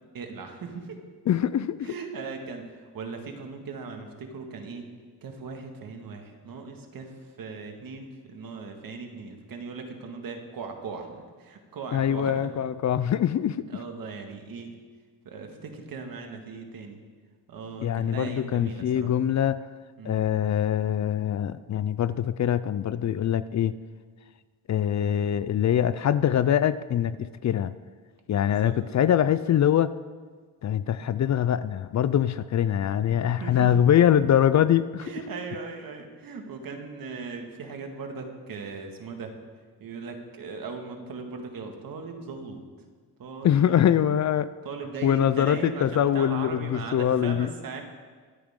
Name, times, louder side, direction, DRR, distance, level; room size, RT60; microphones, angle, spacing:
voice 1, 0.1-1.0 1.8-4.9 5.2-12.5 13.7-14.7 15.3-17.0 17.5-19.1 20.0-20.2 25.0-25.3 28.4-28.8 31.0-31.1 33.4-33.7 35.0-39.3 39.8-42.6 43.2-44.0 44.6-47.8, right 4 dB, 60° right, 4 dB, 2.0 m, -38 dB
voice 2, 1.3-1.9 11.9-13.6 17.8-19.6 20.0-23.7 24.7-27.7 28.3-29.9 30.6-35.1 43.4-44.5 45.0-47.5, left 10 dB, 45° left, 15 dB, 0.5 m, -23 dB
24.0 x 8.7 x 3.8 m, 1.5 s
cardioid pair, 95°, 39 cm